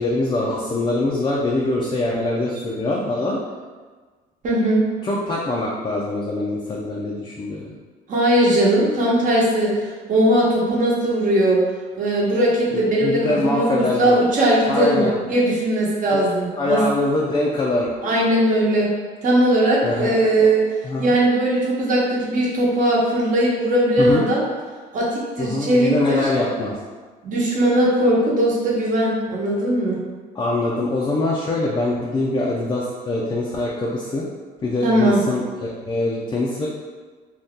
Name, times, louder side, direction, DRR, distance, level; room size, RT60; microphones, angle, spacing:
voice 1, 0.0-3.4 5.0-7.7 12.7-14.2 14.7-15.1 16.1-17.9 19.8-20.5 20.8-21.2 24.0-24.2 25.4-26.7 30.3-34.3 34.6-36.7, left 2 dB, 25° left, -4 dB, 0.4 m, -23 dB
voice 2, 4.4-4.8 8.1-11.6 12.0-16.8 18.0-18.9 19.2-20.6 21.0-24.4 24.9-26.3 27.2-30.0 34.8-35.2, right 1 dB, 50° right, -5 dB, 1.0 m, -19 dB
2.7 x 2.3 x 3.5 m, 1.4 s
cardioid pair, 110°, 17 cm